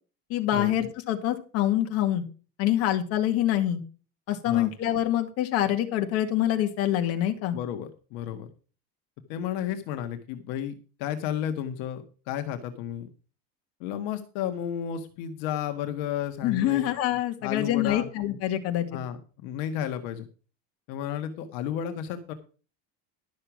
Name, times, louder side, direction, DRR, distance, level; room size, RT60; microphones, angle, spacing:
voice 1, 0.3-2.2 2.6-3.8 4.3-7.6 16.4-18.9, left 12 dB, 50° left, 5 dB, 2.0 m, -25 dB
voice 2, 7.5-8.5 9.3-10.7 11.0-13.1 13.8-16.9 17.4-18.1 18.9-20.3 20.9-22.3, left 10 dB, 70° left, 7 dB, 1.6 m, -32 dB
12.0 x 6.7 x 6.0 m, 0.36 s
cardioid pair, 165°, 31 cm